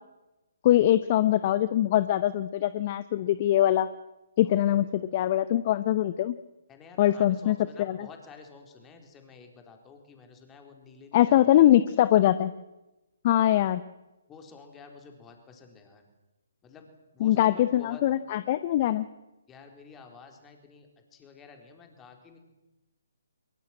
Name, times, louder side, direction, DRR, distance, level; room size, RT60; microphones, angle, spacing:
voice 1, 0.6-3.9 4.4-4.9 5.1-6.3 7.0-8.1 11.1-12.5 13.2-13.8 17.2-19.1, left 13 dB, 35° left, 14 dB, 0.7 m, -22 dB
voice 2, 4.4-4.9 6.7-11.6 14.3-16.1 16.6-18.0 19.5-22.4, left 5 dB, 15° left, 4 dB, 4.1 m, -50 dB
23.0 x 22.0 x 7.7 m, 1.0 s
figure-of-eight pair, 140°, 0 cm